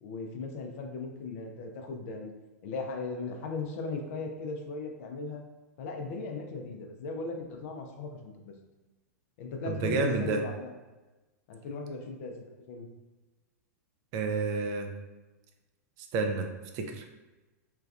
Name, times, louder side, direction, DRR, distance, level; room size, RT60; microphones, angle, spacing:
voice 1, 0.0-2.3 2.6-5.4 5.8-8.5 9.4-10.7 11.5-12.3 12.7-12.9, left 3 dB, 55° left, 3 dB, 0.5 m, -37 dB
voice 2, 9.7-10.4 14.1-14.9 16.1-16.5 16.7-17.0, right 3 dB, 45° right, 4 dB, 0.4 m, -29 dB
3.2 x 2.3 x 2.3 m, 1.2 s
hypercardioid pair, 100°, 9 cm